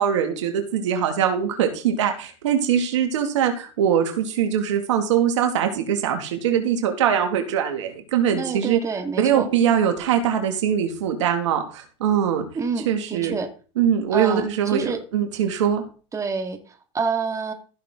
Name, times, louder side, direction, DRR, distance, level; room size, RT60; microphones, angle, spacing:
voice 1, 0.0-8.8 9.2-12.5 12.8-13.4 13.8-15.8, right 8 dB, 85° right, 5 dB, 2.4 m, -22 dB
voice 2, 8.3-9.5 12.6-13.5 14.1-15.0 16.1-17.5, right 5 dB, 20° right, 5 dB, 2.1 m, -28 dB
15.5 x 6.4 x 3.9 m, 0.37 s
supercardioid pair, 110°, 15 cm